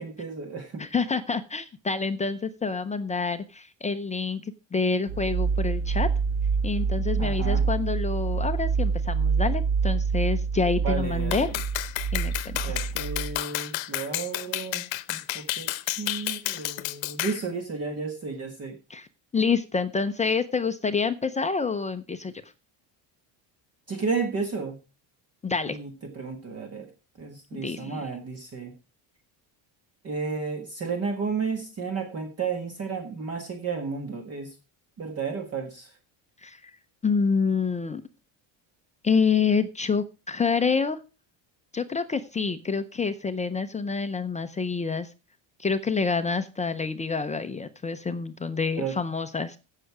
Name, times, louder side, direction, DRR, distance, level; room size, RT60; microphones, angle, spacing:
voice 1, 0.0-0.8 7.2-7.7 10.7-11.5 12.6-14.8 15.1-15.7 16.0-18.8 23.9-24.8 25.7-26.9 27.2-28.7 30.0-34.5 35.0-35.9 48.8-49.0, right 5 dB, 30° right, 5 dB, 1.6 m, -32 dB
voice 2, 0.8-6.1 6.6-11.5 12.1-12.8 18.9-19.1 19.3-22.3 25.4-25.8 27.5-28.0 36.4-36.7 37.0-38.0 39.0-41.0 41.7-45.1 45.6-49.6, left 5 dB, 15° left, 9 dB, 0.5 m, -27 dB
sound 1, 5.1-13.3, right 5 dB, 85° right, 4.9 m, -26 dB
Clapping, 11.3-17.4, left 17 dB, 65° left, 0.9 m, -31 dB
16.0 x 6.6 x 4.7 m, 0.30 s
cardioid pair, 170°, 47 cm